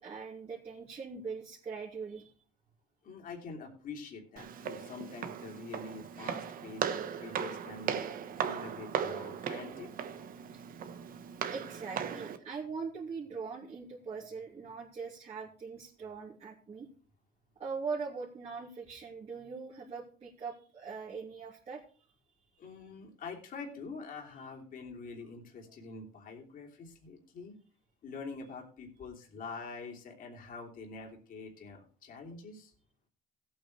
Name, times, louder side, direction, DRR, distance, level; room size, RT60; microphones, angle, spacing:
voice 1, 0.0-2.3 11.5-16.9 17.6-21.8 25.6-25.7, right 5 dB, 40° right, -6 dB, 3.0 m, -41 dB
voice 2, 3.0-8.0 8.4-9.9 22.6-27.5 28.0-32.7, left 4 dB, 55° left, 1 dB, 3.1 m, -45 dB
Walk footsteps, 4.4-12.4, right 8 dB, 55° right, 1.2 m, -37 dB
17.0 x 8.8 x 3.3 m, 0.41 s
cardioid pair, 110°, 17 cm